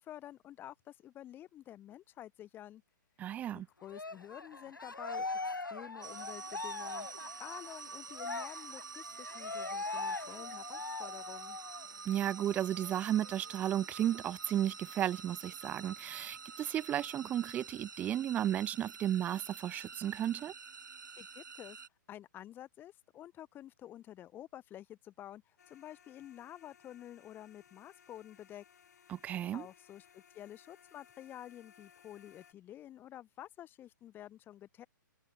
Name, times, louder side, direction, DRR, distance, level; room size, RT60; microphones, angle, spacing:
voice 1, 0.0-2.8 3.5-5.4 5.7-11.6 21.2-21.8 22.1-28.6 29.5-34.9, left 12 dB, 20° left, 4.2 m, -50 dB
voice 2, 3.2-3.7 12.1-20.5 29.1-29.7, right 11 dB, 15° right, 0.4 m, -34 dB
Cheering, 3.9-11.9 12.2-12.4 12.8-13.8, left 3 dB, 85° left, 0.8 m, -41 dB
sound 1, 6.0-21.9, right 5 dB, 70° right, 2.7 m, -48 dB
sound 2, 25.6-32.5, left 8 dB, 55° left, 2.9 m, -63 dB
figure-of-eight pair, 120°, 11 cm